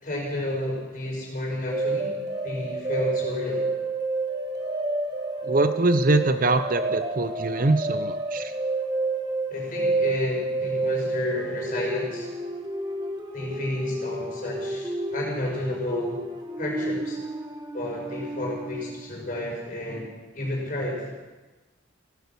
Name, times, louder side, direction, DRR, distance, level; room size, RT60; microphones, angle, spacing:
voice 1, 0.0-2.1 2.4-3.7 9.5-12.3 13.3-16.2 16.6-17.2 17.7-20.1 20.3-21.1, left 1 dB, 40° left, -2 dB, 5.4 m, -31 dB
sound 1, 1.7-19.1, right 2 dB, 20° right, 1.2 m, -30 dB
voice 2, 5.4-8.5, right 2 dB, 45° right, 10 dB, 0.6 m, -23 dB
16.0 x 11.0 x 7.0 m, 1.2 s
head